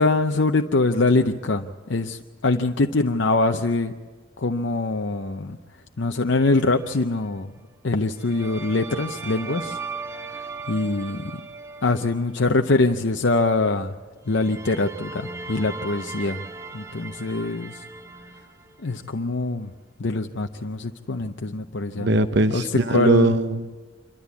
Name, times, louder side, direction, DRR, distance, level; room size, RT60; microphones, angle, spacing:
voice 1, 0.0-3.9 4.4-5.6 6.0-7.5 7.8-9.8 10.7-11.3 11.8-13.9 14.3-16.4 16.7-17.8 18.8-19.7 20.0-22.2 22.5-23.4, left 3 dB, 60° left, 4 dB, 0.7 m, -23 dB
sound 1, 6.3-7.2 8.2-12.6 14.3-19.1, right 4 dB, 15° right, 0.7 m, -38 dB
voice 2, 22.0-23.7, right 2 dB, 55° right, 10 dB, 0.9 m, -20 dB
27.0 x 12.5 x 8.3 m, 1.4 s
head